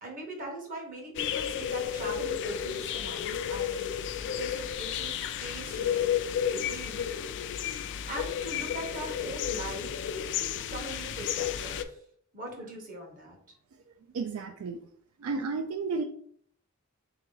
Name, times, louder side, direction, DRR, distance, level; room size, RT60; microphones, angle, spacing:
voice 1, 0.0-3.9 4.2-6.1 6.5-7.1 8.1-10.2 10.7-12.0 12.3-13.4, right 1 dB, 40° right, 1 dB, 1.1 m, -41 dB
sound 1, 1.2-11.8, left 9 dB, 55° left, 0.3 m, -32 dB
voice 2, 14.1-14.8 15.2-16.0, right 4 dB, 75° right, 6 dB, 0.4 m, -32 dB
3.6 x 2.9 x 3.8 m, 0.62 s
head